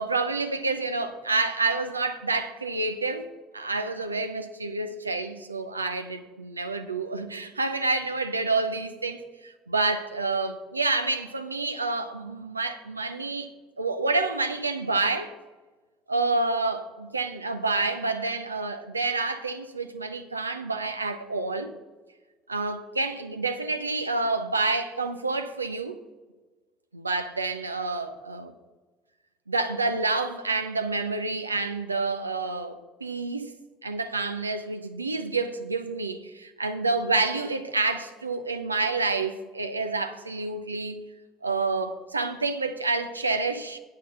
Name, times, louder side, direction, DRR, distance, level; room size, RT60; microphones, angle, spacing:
voice 1, 0.0-3.3 3.5-13.5 13.8-15.3 16.1-21.7 22.5-25.9 26.9-28.5 29.5-33.5 33.8-41.0 41.4-43.8, right 3 dB, 90° right, 0.5 m, -28 dB
8.6 x 6.6 x 6.4 m
figure-of-eight pair, 60°, 0 cm